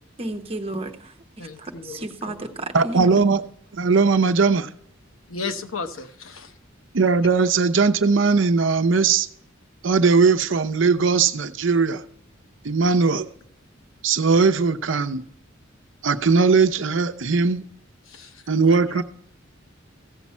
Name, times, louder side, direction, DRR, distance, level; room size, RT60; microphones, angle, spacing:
voice 1, 0.2-3.3, right 1 dB, 30° right, 1.0 m, -33 dB
voice 2, 1.4-2.1 5.3-6.5 18.1-18.4 18.7-19.0, left 4 dB, 85° left, 0.9 m, -34 dB
voice 3, 2.7-3.4 3.7-4.7 6.9-9.3 9.8-12.0 12.6-13.3 14.0-15.2 16.0-17.6 18.5-19.0, right 4 dB, 65° right, 0.6 m, -19 dB
15.5 x 7.2 x 4.3 m
head